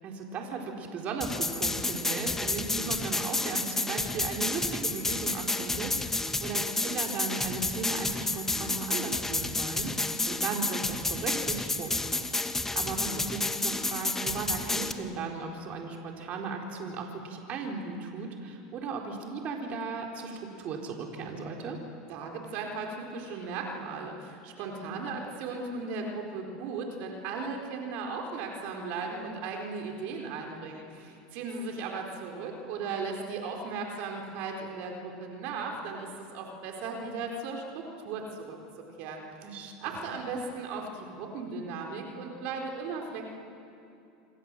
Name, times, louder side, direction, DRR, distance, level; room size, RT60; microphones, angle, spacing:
voice 1, 0.0-11.9 12.3-21.8 24.8-24.9 39.4-40.1, right 4 dB, 45° right, 1 dB, 4.3 m, -36 dB
sound 1, 1.2-14.9, left 2 dB, 10° left, 1.7 m, -31 dB
voice 2, 22.1-38.6 39.0-43.3, right 4 dB, 65° right, 2 dB, 4.1 m, -37 dB
27.5 x 24.5 x 7.7 m, 2.7 s
supercardioid pair, 105°, 3 cm